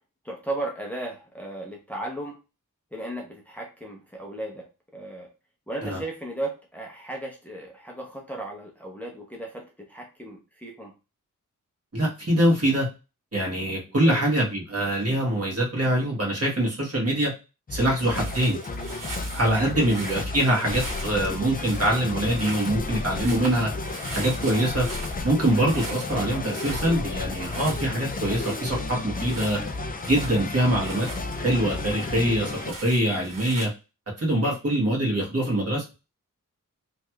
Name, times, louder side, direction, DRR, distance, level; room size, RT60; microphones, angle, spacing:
voice 1, 0.2-2.4 2.9-4.7 4.9-5.3 5.7-10.9 14.0-14.2 19.7-19.9 25.5-25.6 34.4-34.6, right 1 dB, 5° left, -1 dB, 0.7 m, -35 dB
voice 2, 11.9-12.9 13.3-17.3 17.7-18.6 19.3-23.7 24.1-24.9 25.2-29.6 30.1-31.1 31.4-33.7 34.2-35.9, right 1 dB, 45° right, -3 dB, 1.4 m, -24 dB
sound 1, 17.7-32.7, left 3 dB, 30° left, 0.4 m, -32 dB
sound 2, 18.1-33.7, right 2 dB, 75° right, 1.8 m, -41 dB
3.2 x 2.9 x 2.3 m, 0.29 s
wide cardioid pair, 105°, 33 cm